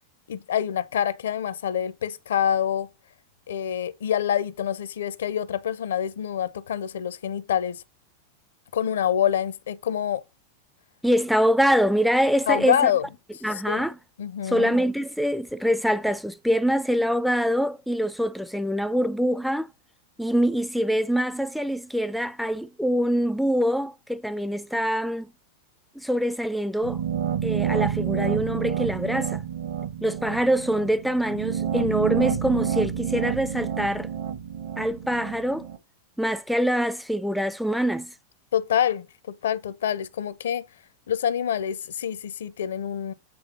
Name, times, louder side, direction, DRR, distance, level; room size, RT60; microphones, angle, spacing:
voice 1, 0.3-2.9 3.5-7.8 8.7-10.2 12.5-13.1 13.7-13.9 14.2-14.8 38.5-40.6 41.1-43.1, left 9 dB, 60° left, 0.5 m, -26 dB
voice 2, 11.0-12.9 13.4-14.0 14.4-19.7 20.2-25.3 26.0-27.0 27.4-29.4 30.0-34.1 34.8-35.7 36.2-38.1, equal, ahead, 0.4 m, -24 dB
sound 1, 26.8-35.8, right 9 dB, 55° right, 1.2 m, -29 dB
7.7 x 3.2 x 5.9 m
figure-of-eight pair, 90°, 0 cm